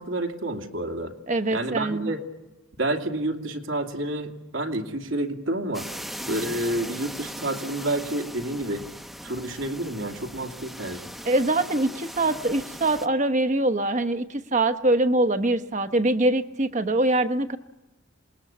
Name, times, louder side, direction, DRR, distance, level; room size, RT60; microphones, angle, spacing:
voice 1, 0.0-1.1 1.5-2.2 2.8-5.9 6.2-8.8 9.2-11.1, right 1 dB, 80° right, 3 dB, 2.6 m, -29 dB
voice 2, 1.3-2.1 11.2-17.6, right 2 dB, 35° right, 10 dB, 1.0 m, -23 dB
sound 1, 5.7-13.1, equal, ahead, 0.8 m, -39 dB
27.5 x 20.0 x 8.7 m, 1.1 s
head